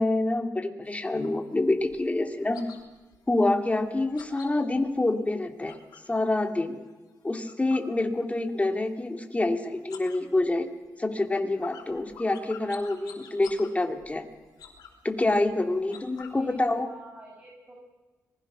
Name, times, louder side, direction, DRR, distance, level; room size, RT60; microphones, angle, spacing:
voice 1, 0.0-2.6 3.3-5.8 6.1-6.8 7.2-10.7 11.0-14.3 15.0-16.9, left 2 dB, 20° left, 5 dB, 2.9 m, -27 dB
sound 1, 0.9-6.2 6.5-8.7 8.9-9.5 9.8-16.6, left 7 dB, 80° left, 3.7 m, -50 dB
voice 2, 16.3-17.7, right 1 dB, 25° right, -2 dB, 7.4 m, -49 dB
25.5 x 21.0 x 6.3 m, 1.3 s
cardioid pair, 70°, 7 cm